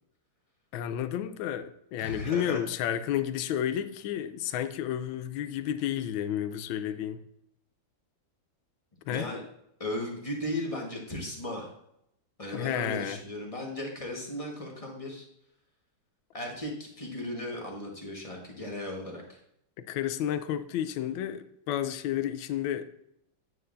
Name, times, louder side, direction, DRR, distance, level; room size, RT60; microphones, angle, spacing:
voice 1, 0.7-7.2 9.1-9.3 12.5-13.2 19.8-23.0, left 10 dB, 85° left, 1.3 m, -31 dB
voice 2, 2.0-2.7 9.0-9.4 9.8-11.7 12.4-15.3 16.3-19.4, left 1 dB, 20° left, 1.3 m, -36 dB
9.1 x 7.8 x 2.6 m
omnidirectional pair, 2.1 m